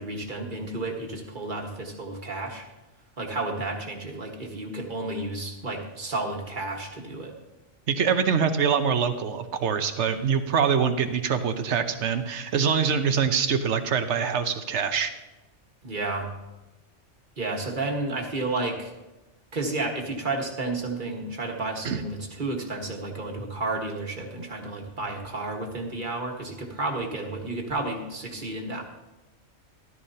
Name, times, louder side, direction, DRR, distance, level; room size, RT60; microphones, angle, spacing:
voice 1, 0.0-2.6 3.2-7.3 15.8-16.3 17.4-18.9 19.5-28.8, right 2 dB, 45° right, 1 dB, 1.7 m, -31 dB
voice 2, 7.9-15.1 21.8-22.0, right 6 dB, 70° right, 9 dB, 1.1 m, -24 dB
13.5 x 12.5 x 2.8 m, 1.1 s
omnidirectional pair, 1.2 m